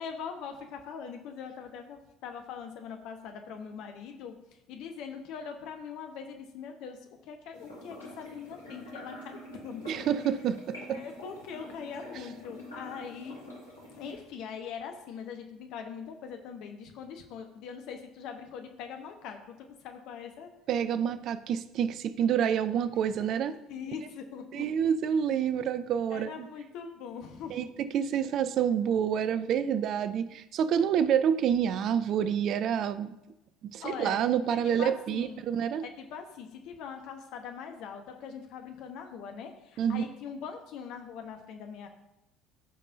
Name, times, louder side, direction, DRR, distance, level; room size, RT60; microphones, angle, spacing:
voice 1, 0.0-4.3 4.7-7.0 7.2-9.4 9.6-10.0 10.9-13.4 13.9-20.5 23.7-24.6 26.1-27.6 33.8-34.2 34.5-35.4 35.8-41.9, left 7 dB, 55° left, 5 dB, 1.1 m, -42 dB
sound 1, 7.5-14.2, left 1 dB, 80° left, 2.6 m, -46 dB
voice 2, 9.9-11.0 20.7-23.5 24.5-26.5 27.5-33.1 33.6-35.9 39.8-40.1, right 8 dB, 45° right, 13 dB, 0.4 m, -28 dB
14.0 x 5.4 x 2.7 m, 0.92 s
figure-of-eight pair, 60°, 0 cm